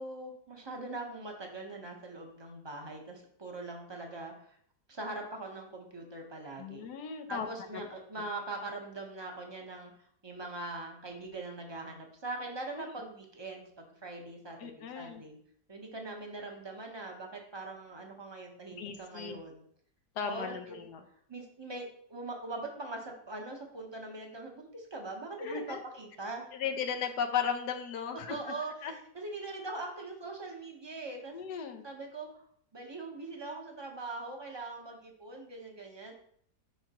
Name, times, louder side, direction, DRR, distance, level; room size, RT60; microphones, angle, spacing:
voice 1, 0.0-4.6 4.9-6.8 7.3-9.9 10.2-15.4 15.7-19.6 20.2-20.5 21.3-26.5 28.3-31.3 31.8-32.5 32.7-36.1, right 2 dB, 20° right, 1 dB, 0.8 m, -42 dB
voice 2, 6.6-7.5 7.7-7.9 12.7-12.9 14.6-15.2 18.8-19.4 20.2-21.0 25.4-25.8 26.5-28.5 28.8-28.9 31.3-31.9, left 7 dB, 80° left, 5 dB, 1.3 m, -36 dB
6.1 x 5.7 x 2.9 m, 0.65 s
omnidirectional pair, 1.7 m